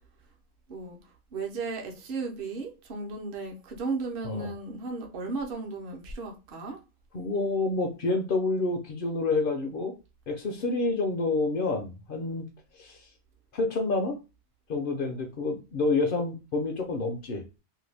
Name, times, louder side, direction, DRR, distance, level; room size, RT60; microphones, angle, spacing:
voice 1, 1.3-6.8, right 3 dB, 60° right, 0.8 m, -35 dB
voice 2, 7.1-9.9 10.3-12.5 12.8-13.0 13.5-14.2 14.7-17.4, left 3 dB, 60° left, 0.6 m, -28 dB
2.6 x 2.2 x 3.2 m
omnidirectional pair, 1.2 m